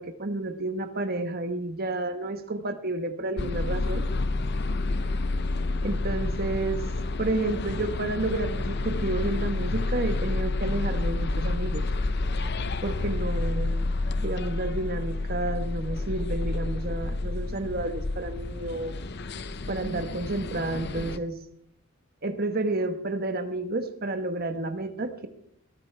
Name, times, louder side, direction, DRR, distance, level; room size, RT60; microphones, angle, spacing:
voice 1, 0.0-4.0 5.8-6.8 7.2-11.8 12.8-13.8 14.2-19.0 19.7-21.4 22.2-25.3, right 2 dB, 45° right, 8 dB, 1.1 m, -30 dB
sound 1, 3.4-21.2, left 2 dB, 50° left, 0.7 m, -29 dB
21.0 x 14.5 x 3.4 m, 0.69 s
head